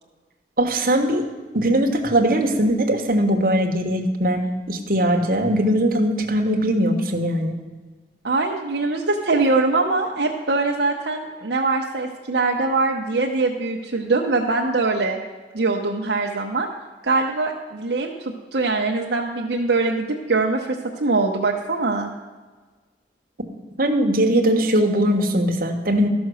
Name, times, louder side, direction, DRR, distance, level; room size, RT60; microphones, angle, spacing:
voice 1, 0.6-1.2 1.5-4.4 4.7-7.5 23.8-26.1, right 1 dB, 50° right, 2 dB, 1.3 m, -20 dB
voice 2, 8.2-15.2 15.5-16.7 17.0-22.1, right 3 dB, 70° right, 0 dB, 0.8 m, -22 dB
13.5 x 6.2 x 6.2 m, 1.3 s
head